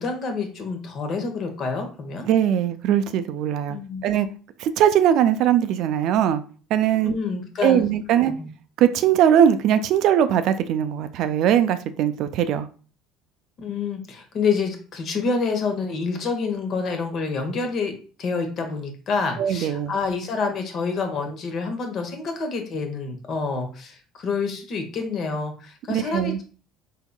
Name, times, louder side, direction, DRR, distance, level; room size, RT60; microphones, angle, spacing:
voice 1, 0.0-2.3 3.7-4.1 7.0-8.5 13.6-17.9 18.2-26.4, left 4 dB, 50° left, 0.9 m, -28 dB
voice 2, 2.3-3.8 4.0-4.3 4.6-6.4 6.7-7.1 7.6-8.3 8.8-12.7 19.4-19.9 25.9-26.4, right 10 dB, 60° right, 0.3 m, -20 dB
3.6 x 3.5 x 2.2 m
hypercardioid pair, 70°, 0 cm